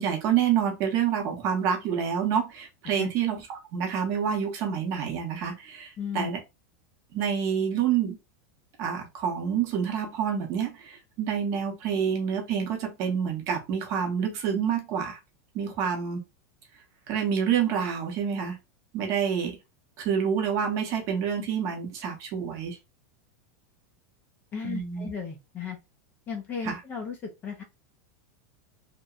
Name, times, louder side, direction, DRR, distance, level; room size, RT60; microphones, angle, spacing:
voice 1, 0.0-6.4 7.1-8.2 8.8-15.2 15.5-16.2 17.1-18.6 18.9-19.6 20.0-22.8 24.6-25.1 26.6-26.8, right 7 dB, 35° right, 0.7 m, -28 dB
voice 2, 6.0-6.3 24.5-25.8 26.3-27.6, left 6 dB, 20° left, 0.4 m, -35 dB
2.8 x 2.1 x 2.4 m
supercardioid pair, 170°, 9 cm